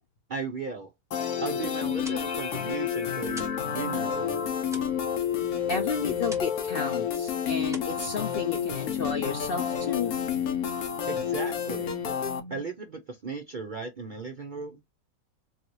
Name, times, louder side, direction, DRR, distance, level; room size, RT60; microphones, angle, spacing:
voice 1, 0.3-0.9 1.4-4.5 11.1-11.9 12.5-14.8, right 4 dB, 60° right, 0.5 m, -36 dB
sound 1, 1.1-12.4, left 8 dB, 85° left, 1.3 m, -30 dB
sound 2, 2.0-3.7 4.0-6.7 7.0-7.3 7.6-8.7, right 1 dB, 5° right, 0.7 m, -46 dB
sound 3, 3.0-12.6, right 1 dB, 35° left, 0.9 m, -46 dB
voice 2, 5.7-10.3, left 5 dB, 60° left, 0.6 m, -32 dB
3.9 x 2.6 x 3.0 m
omnidirectional pair, 1.5 m